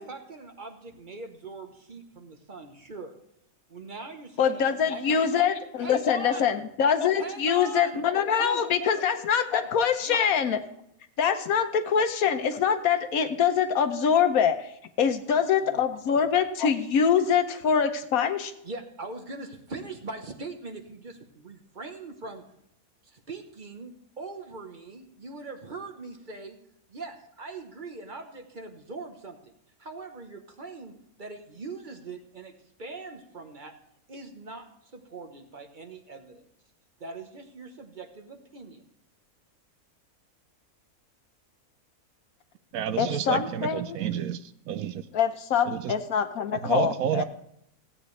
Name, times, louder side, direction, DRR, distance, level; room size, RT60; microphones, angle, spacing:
voice 1, 0.0-3.2 3.7-5.5 5.8-6.5 7.2-8.0 8.4-8.9 9.5-9.7 10.0-10.2 15.1-16.2 18.6-22.4 23.0-26.6 26.9-29.5 29.8-32.5 32.8-33.7 34.1-36.4 37.0-38.8, right 3 dB, 35° right, 6 dB, 1.0 m, -41 dB
voice 2, 4.4-10.6 11.2-14.7 15.0-18.5 43.0-44.0 45.1-47.2, left 7 dB, 70° left, 8 dB, 1.2 m, -24 dB
voice 3, 42.7-45.0 45.7-45.9 46.5-47.2, right 9 dB, 75° right, 12 dB, 1.0 m, -30 dB
16.0 x 8.8 x 3.2 m, 0.76 s
omnidirectional pair, 1.6 m